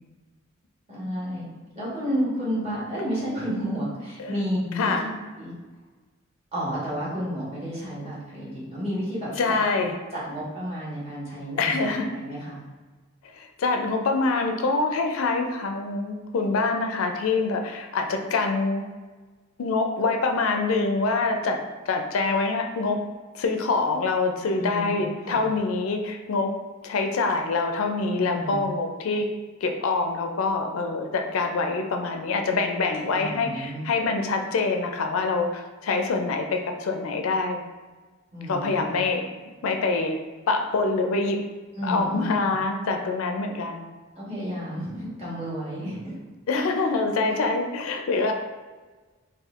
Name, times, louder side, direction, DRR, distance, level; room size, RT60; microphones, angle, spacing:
voice 1, 0.9-1.5 1.7-5.1 5.4-5.5 6.5-12.6 24.6-25.4 28.1-28.7 33.1-33.8 38.3-39.0 41.7-42.3 44.1-46.2 47.3-47.4, equal, 30° right, -8 dB, 1.2 m, -31 dB
voice 2, 9.4-10.0 11.6-12.1 13.3-18.8 19.6-21.6 21.9-23.0 23.3-26.5 26.8-29.3 29.6-37.6 38.5-39.2 39.6-40.2 40.5-41.4 41.8-43.9 46.5-48.3, left 3 dB, 80° left, 4 dB, 0.4 m, -25 dB
4.1 x 2.2 x 2.4 m, 1.3 s
head